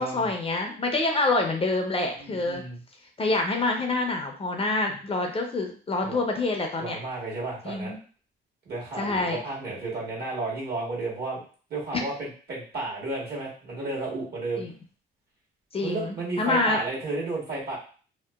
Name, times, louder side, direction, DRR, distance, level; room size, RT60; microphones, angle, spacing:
voice 1, 0.0-2.6 3.2-7.0 7.6-8.0 9.0-9.4 14.6-14.7 15.7-16.8, left 2 dB, 30° left, 2 dB, 0.5 m, -26 dB
voice 2, 2.2-2.8 6.0-6.2 6.8-7.9 8.6-11.4 11.7-14.6 15.8-17.8, right 2 dB, 55° right, -4 dB, 1.3 m, -32 dB
2.8 x 2.1 x 2.2 m, 0.40 s
cardioid pair, 90°, 20 cm